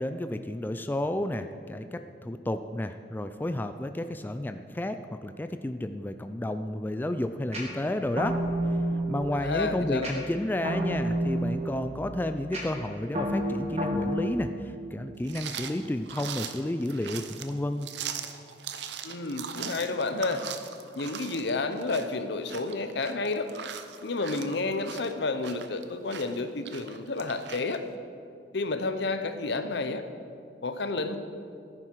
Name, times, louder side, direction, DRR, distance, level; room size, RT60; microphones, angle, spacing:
voice 1, 0.0-5.0 5.2-8.4 9.1-17.9, left 1 dB, 10° left, 9 dB, 0.3 m, -31 dB
sound 1, 7.5-14.3, right 1 dB, 35° right, 2.2 m, -31 dB
voice 2, 9.3-10.2 19.0-20.5 20.9-23.5 24.0-27.8 28.5-30.0 30.6-31.2, left 3 dB, 70° left, 9 dB, 0.8 m, -30 dB
sound 2, 15.2-27.8, right 8 dB, 70° right, 0.8 m, -40 dB
15.5 x 9.7 x 4.6 m, 2.6 s
head